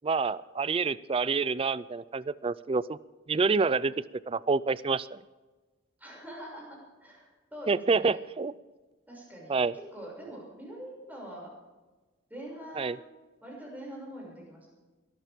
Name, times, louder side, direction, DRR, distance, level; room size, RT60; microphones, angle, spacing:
voice 1, 0.0-3.0 3.3-3.9 4.3-5.2 7.7-8.5 9.5-9.7 12.8-13.0, right 4 dB, 25° right, 18 dB, 0.4 m, -27 dB
voice 2, 6.0-8.2 9.1-11.5 12.3-13.0 13.4-14.7, right 1 dB, 10° right, -3 dB, 6.4 m, -44 dB
22.5 x 13.5 x 3.6 m, 1.2 s
head